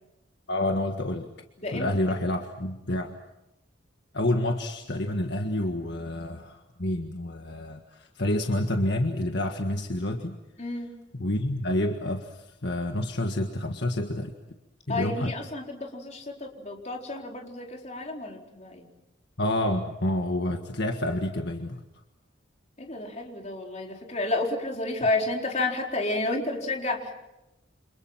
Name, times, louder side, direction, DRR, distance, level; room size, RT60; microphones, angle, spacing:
voice 1, 0.5-1.3 1.7-3.1 4.1-10.4 11.1-14.3 14.9-15.3 19.4-21.8, left 1 dB, 60° left, 4 dB, 1.7 m, -28 dB
voice 2, 10.6-10.9 14.9-18.9 22.8-27.1, left 2 dB, 35° left, 1 dB, 4.2 m, -31 dB
29.0 x 27.5 x 5.9 m, 0.94 s
head